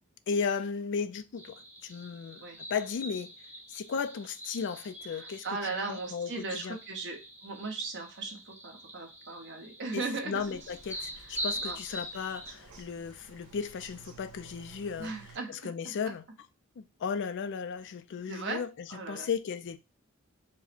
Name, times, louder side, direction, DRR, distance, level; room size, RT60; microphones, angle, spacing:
voice 1, 0.3-3.3 3.7-6.8 9.9-15.1 15.5-16.2 16.8-19.8, left 6 dB, 55° left, 0.4 m, -35 dB
sound 1, 1.4-12.5, equal, 10° right, 0.8 m, -43 dB
voice 2, 5.1-10.6 10.9-11.0 11.6-11.8 15.0-16.1 18.3-18.6 18.9-19.3, right 3 dB, 55° right, 1.1 m, -38 dB
Bird vocalization bird call bird song, 10.3-15.4, right 4 dB, 85° right, 1.3 m, -53 dB
4.7 x 2.1 x 4.3 m
head